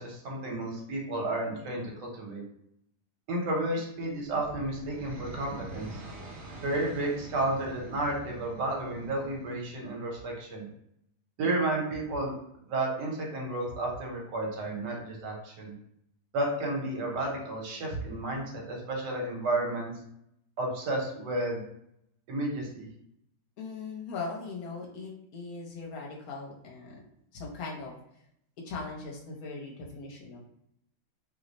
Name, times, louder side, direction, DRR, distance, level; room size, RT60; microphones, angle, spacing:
voice 1, 0.0-2.4 3.3-6.0 6.6-10.7 11.4-12.3 12.7-15.7 16.3-19.9 20.6-21.6 22.3-22.9, right 2 dB, 75° right, -1 dB, 1.4 m, -32 dB
sound 1, 4.1-10.0, right 2 dB, 50° right, 0.9 m, -45 dB
voice 2, 23.6-27.1 27.3-27.9 28.6-30.5, left 4 dB, 60° left, -2 dB, 1.1 m, -39 dB
3.1 x 2.1 x 3.9 m, 0.74 s
omnidirectional pair, 1.9 m